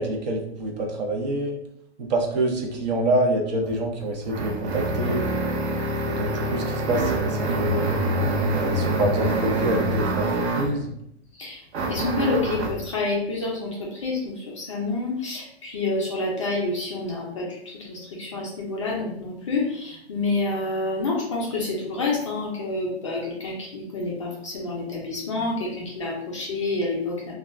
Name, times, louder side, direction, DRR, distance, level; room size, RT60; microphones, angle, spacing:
voice 1, 0.0-1.5 2.0-5.3 6.0-7.9 8.5-10.9, right 1 dB, 40° right, 0 dB, 0.6 m, -26 dB
sound 1, 3.6-10.8 11.7-12.8, right 1 dB, 85° right, 0.8 m, -25 dB
voice 2, 11.9-27.3, left 3 dB, 30° left, -2 dB, 0.4 m, -28 dB
2.3 x 2.0 x 3.4 m, 0.76 s
hypercardioid pair, 155°, 33 cm